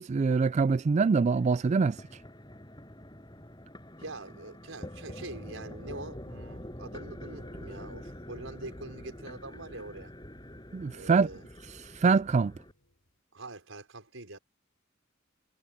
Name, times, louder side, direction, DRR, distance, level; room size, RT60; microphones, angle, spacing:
voice 1, 0.0-2.0 10.7-11.3 11.7-12.5, right 4 dB, 35° right, 0.3 m, -25 dB
sound 1, 1.3-12.7, left 1 dB, 20° left, 6.9 m, -46 dB
voice 2, 4.0-10.1 10.9-11.4 13.3-14.4, right 2 dB, 80° right, 5.3 m, -44 dB
sound 2, 7.3-13.2, left 1 dB, 85° left, 6.4 m, -63 dB
head